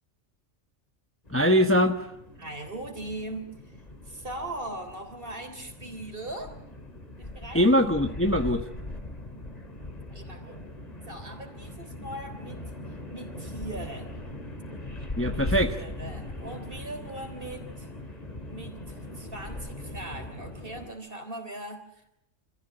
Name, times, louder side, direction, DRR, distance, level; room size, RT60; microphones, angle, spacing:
sound 1, 1.3-20.9, left 1 dB, 30° left, 2.6 m, -40 dB
voice 1, 1.3-2.0 7.5-8.6 15.2-15.7, equal, 10° left, 6 dB, 1.1 m, -22 dB
voice 2, 2.4-3.8 4.1-6.6 7.2-7.6 10.1-10.6 11.1-12.6 13.1-14.1 15.3-17.9 18.5-22.0, right 1 dB, 45° right, 6 dB, 3.7 m, -40 dB
26.5 x 15.0 x 8.9 m, 0.80 s
omnidirectional pair, 1.3 m